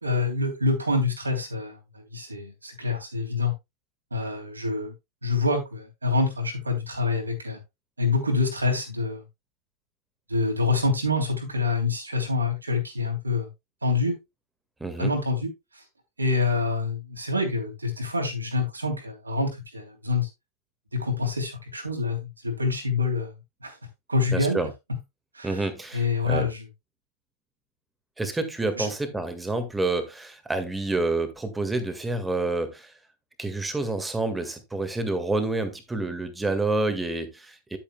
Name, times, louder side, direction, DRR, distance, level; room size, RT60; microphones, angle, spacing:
voice 1, 0.0-3.5 4.1-4.9 5.2-7.6 8.0-9.2 10.3-13.5 13.8-14.2 15.0-15.5 16.2-20.3 20.9-22.2 22.4-23.3 23.6-23.8 24.1-24.7 25.3-25.7 25.9-26.6 28.8-28.9, left 3 dB, 80° right, 3 dB, 3.1 m, -26 dB
voice 2, 14.8-15.1 24.3-24.7 25.4-26.5 28.2-32.9 33.4-37.8, right 2 dB, 10° right, 9 dB, 1.7 m, -28 dB
10.5 x 8.7 x 2.2 m, 0.21 s
figure-of-eight pair, 90°, 0 cm